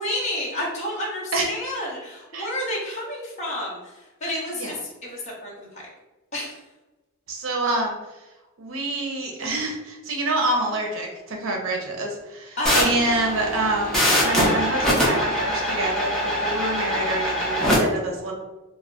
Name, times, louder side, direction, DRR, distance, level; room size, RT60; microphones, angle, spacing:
voice 1, 0.0-3.9 4.2-5.8 6.3-6.6 12.6-12.9, left 1 dB, 35° left, -5 dB, 0.8 m, -30 dB
voice 2, 7.3-8.0 8.6-18.3, right 2 dB, 75° right, 2 dB, 0.6 m, -27 dB
sound 1, 12.6-17.8, equal, ahead, 0.6 m, -23 dB
2.3 x 2.0 x 3.5 m, 1.1 s
head